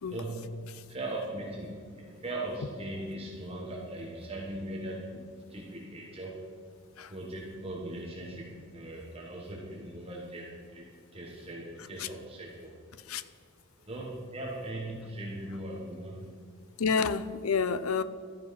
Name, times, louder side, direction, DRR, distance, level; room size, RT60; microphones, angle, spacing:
voice 1, 0.1-6.4 7.1-12.8 13.9-16.3, right 1 dB, 25° right, -3 dB, 1.4 m, -39 dB
voice 2, 12.9-13.3 16.8-18.0, left 5 dB, 80° left, 15 dB, 0.6 m, -29 dB
12.5 x 10.5 x 5.9 m, 2.1 s
head